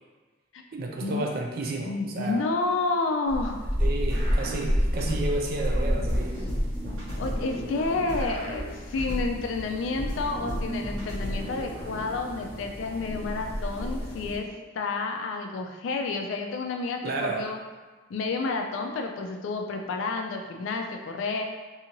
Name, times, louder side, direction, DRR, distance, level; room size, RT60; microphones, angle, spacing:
voice 1, 0.7-2.4 3.8-6.4 17.0-17.5, right 2 dB, 50° right, 1 dB, 0.4 m, -31 dB
voice 2, 1.8-3.6 7.2-14.5 14.7-17.6 18.1-21.4, left 3 dB, 75° left, 3 dB, 0.3 m, -30 dB
sound 1, 3.3-14.4, equal, 10° left, 0.5 m, -31 dB
sound 2, 4.1-5.5 6.0-9.5 10.0-12.1, equal, 85° right, 1.0 m, -34 dB
2.7 x 2.5 x 2.9 m, 1.3 s
head